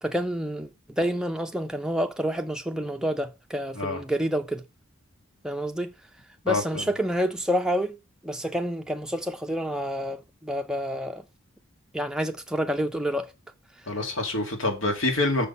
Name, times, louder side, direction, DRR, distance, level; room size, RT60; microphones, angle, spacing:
voice 1, 0.0-4.6 5.4-5.9 6.4-8.0 8.2-11.2 11.9-13.3, equal, 5° right, 0.7 m, -28 dB
voice 2, 6.5-6.9 13.9-15.5, left 2 dB, 60° left, 2.5 m, -26 dB
6.5 x 6.4 x 5.5 m
head